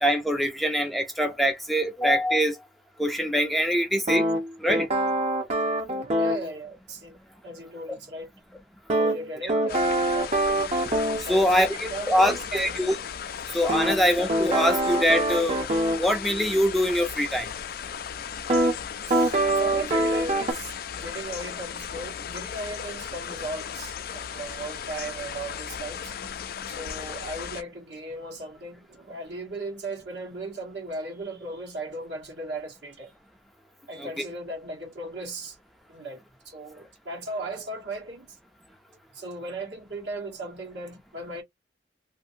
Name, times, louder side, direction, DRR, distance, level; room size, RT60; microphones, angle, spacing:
voice 1, 0.0-2.6 3.0-4.2 4.6-4.9 9.4-9.5 11.3-12.9 13.5-15.6 16.0-17.5 34.0-34.3, equal, ahead, 0.5 m, -23 dB
sound 1, 4.1-6.4 8.9-11.3 13.7-16.0 18.5-18.7 19.1-20.5, right 1 dB, 40° right, 0.8 m, -24 dB
voice 2, 6.2-7.2 7.4-8.3 9.0-10.9 11.2-12.8 13.8-14.0 19.0-26.2 26.7-33.1 33.9-35.6 35.9-38.4 39.1-41.4, right 2 dB, 70° right, 1.4 m, -37 dB
sound 2, 9.7-27.6, left 8 dB, 55° left, 0.4 m, -36 dB
2.7 x 2.6 x 2.6 m
head